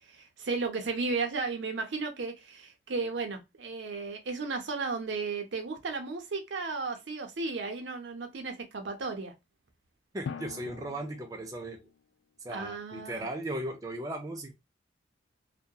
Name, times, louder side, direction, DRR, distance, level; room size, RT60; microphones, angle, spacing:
voice 1, 0.1-9.3 12.5-13.3, right 4 dB, 70° right, 0.6 m, -34 dB
Drum, 7.0-7.1 10.3-12.0, left 6 dB, 65° left, 0.3 m, -43 dB
voice 2, 10.1-11.8 12.4-14.5, right 1 dB, 20° right, 0.3 m, -37 dB
2.7 x 2.1 x 2.2 m
head